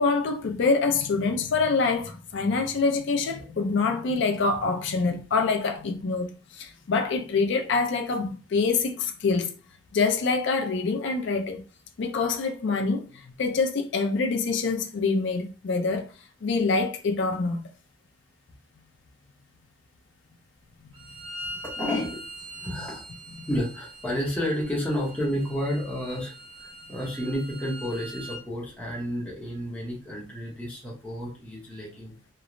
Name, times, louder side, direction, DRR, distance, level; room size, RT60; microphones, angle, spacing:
voice 1, 0.0-9.5 9.9-11.6 12.0-16.1 16.4-17.6, left 4 dB, 55° left, 0.4 m, -25 dB
Bowed string instrument, 20.9-28.4, equal, 90° right, 1.1 m, -42 dB
voice 2, 21.6-23.1 23.5-32.1, equal, 5° left, 0.7 m, -31 dB
3.0 x 2.0 x 2.5 m
head